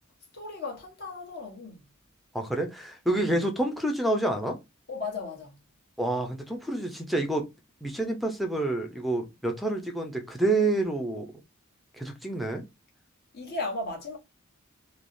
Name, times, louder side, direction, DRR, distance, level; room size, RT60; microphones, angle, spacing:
voice 1, 0.3-1.9 4.9-5.6 13.3-14.2, left 3 dB, 50° left, 1.1 m, -36 dB
voice 2, 2.3-4.6 6.0-7.4 7.8-11.3 12.0-12.6, right 2 dB, ahead, 0.5 m, -28 dB
3.2 x 2.0 x 2.5 m
head